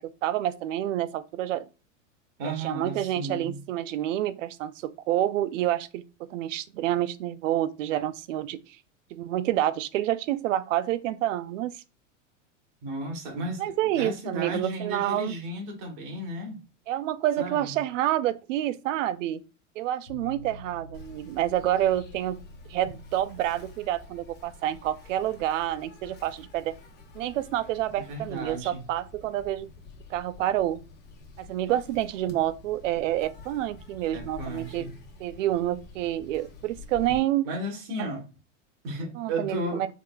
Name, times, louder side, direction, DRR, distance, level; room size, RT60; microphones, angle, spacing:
voice 1, 0.0-1.7 2.6-8.6 9.1-11.7 13.6-15.4 16.9-19.4 19.8-22.4 22.7-26.7 27.1-29.7 30.1-30.8 31.4-34.9 35.2-37.5 39.2-39.9, right 13 dB, 75° right, 0.5 m, -28 dB
voice 2, 2.4-3.6 12.8-16.6 17.4-17.8 28.0-28.8 34.1-34.9 37.4-38.3 38.8-39.9, right 1 dB, 55° right, 1.4 m, -34 dB
sound 1, 20.1-31.2, equal, 60° left, 1.3 m, -51 dB
Insect, 20.9-37.2, left 3 dB, 25° left, 1.0 m, -49 dB
3.6 x 3.2 x 2.3 m
hypercardioid pair, 115°, 38 cm